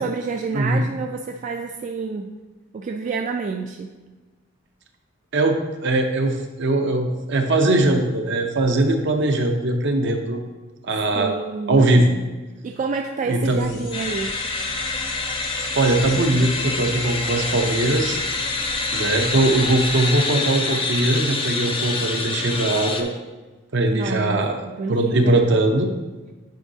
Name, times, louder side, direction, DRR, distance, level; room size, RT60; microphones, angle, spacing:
voice 1, 0.0-2.3 2.7-3.9 11.1-11.9 12.6-14.4 23.9-25.5, right 4 dB, 40° right, 3 dB, 0.3 m, -28 dB
voice 2, 5.3-10.4 10.8-11.3 11.7-12.2 13.3-13.8 15.8-18.2 18.9-23.1 23.7-24.6 24.9-25.9, right 2 dB, 60° right, 4 dB, 0.7 m, -20 dB
sound 1, 13.4-20.5, left 3 dB, 75° left, 1.4 m, -38 dB
sound 2, 13.9-23.0, left 3 dB, 25° left, 0.6 m, -26 dB
9.2 x 4.6 x 2.7 m, 1.2 s
head